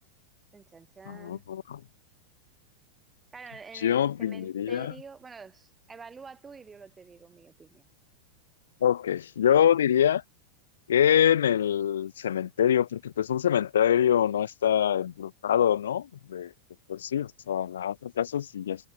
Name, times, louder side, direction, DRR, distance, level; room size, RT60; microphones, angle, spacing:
voice 1, 0.5-1.4 3.3-7.9, right 5 dB, 15° right, 4.4 m, -47 dB
voice 2, 1.1-1.8 3.7-4.9 8.8-10.2 10.9-16.5 16.9-18.9, left 9 dB, 65° left, 0.5 m, -25 dB
figure-of-eight pair, 90°, 0 cm